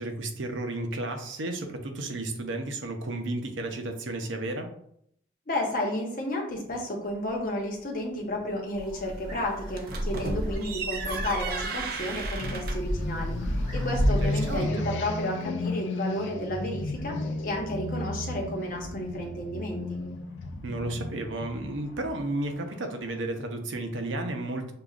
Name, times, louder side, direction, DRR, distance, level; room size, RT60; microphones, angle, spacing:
voice 1, 0.0-4.7 14.2-14.9 20.6-24.7, right 2 dB, 90° right, 5 dB, 0.7 m, -33 dB
voice 2, 5.5-20.0, left 1 dB, 45° left, 0 dB, 0.9 m, -32 dB
sound 1, 8.7-14.6, equal, 30° right, 1.2 m, -32 dB
sound 2, 9.7-13.0, right 2 dB, 50° right, 0.4 m, -33 dB
sound 3, 12.4-23.1, left 2 dB, 80° left, 0.4 m, -34 dB
6.6 x 2.3 x 2.4 m, 0.70 s
head